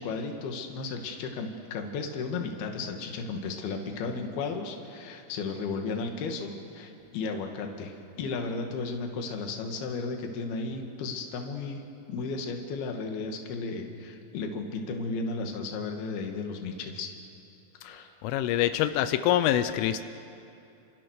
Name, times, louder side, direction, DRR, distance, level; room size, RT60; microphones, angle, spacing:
voice 1, 0.0-11.8 12.1-17.1 17.8-18.1, left 4 dB, 60° left, 3 dB, 3.6 m, -34 dB
voice 2, 18.2-20.0, left 12 dB, 85° left, 11 dB, 3.3 m, -25 dB
29.5 x 27.5 x 6.6 m, 2.8 s
omnidirectional pair, 5.6 m